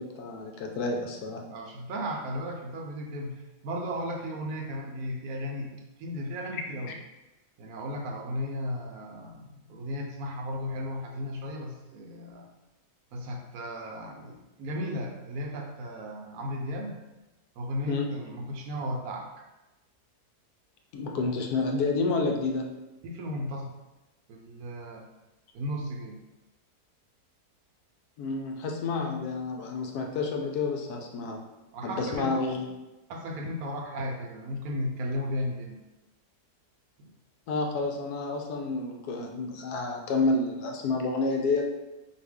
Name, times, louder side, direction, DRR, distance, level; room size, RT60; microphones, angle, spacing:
voice 1, 0.0-1.4 6.5-6.6 6.9-7.0 17.9-18.1 20.9-22.7 28.2-31.4 31.8-32.7 37.5-41.6, left 3 dB, 75° left, 2 dB, 1.1 m, -29 dB
voice 2, 1.5-6.9 7.6-12.5 13.1-16.9 17.6-19.4 23.0-23.7 24.3-25.1 25.5-26.2 31.7-32.4 33.1-35.8 37.0-37.1, equal, 70° right, 1 dB, 1.0 m, -35 dB
4.1 x 2.8 x 3.5 m, 1.0 s
omnidirectional pair, 1.7 m